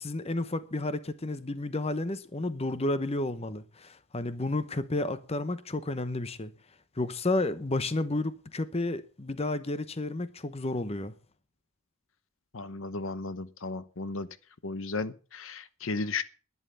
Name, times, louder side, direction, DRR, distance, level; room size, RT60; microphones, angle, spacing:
voice 1, 0.0-6.5 7.0-11.1, left 2 dB, 25° left, 0.9 m, -31 dB
voice 2, 12.5-14.3 14.6-16.2, left 3 dB, 60° left, 0.8 m, -34 dB
11.0 x 11.0 x 6.8 m
head